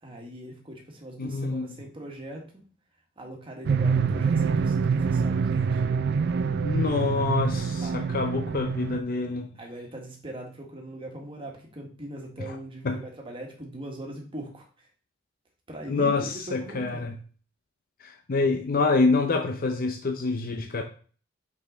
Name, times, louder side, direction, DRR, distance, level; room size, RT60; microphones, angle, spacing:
voice 1, 0.0-2.6 3.2-5.8 7.8-8.0 9.6-14.9 15.7-17.1, right 1 dB, 25° right, 0 dB, 1.7 m, -41 dB
voice 2, 1.2-1.7 6.6-9.5 12.8-13.0 15.9-17.2 18.0-20.8, left 3 dB, 45° left, 5 dB, 0.6 m, -26 dB
sound 1, 3.6-9.0, right 5 dB, 55° right, 0.4 m, -25 dB
5.4 x 4.9 x 3.9 m, 0.41 s
head